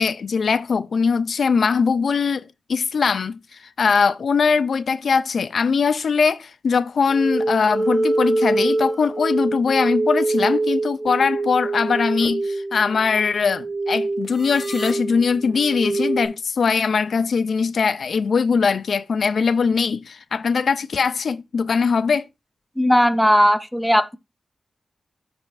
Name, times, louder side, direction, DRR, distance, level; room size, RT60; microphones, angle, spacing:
voice 1, 0.0-2.4 2.7-22.2, left 5 dB, 75° left, 0.3 m, -21 dB
sound 1, 7.1-16.3, right 2 dB, 25° right, 2.4 m, -24 dB
voice 2, 22.8-24.2, equal, 5° left, 0.7 m, -17 dB
13.5 x 4.8 x 2.5 m
wide cardioid pair, 85°, 0 cm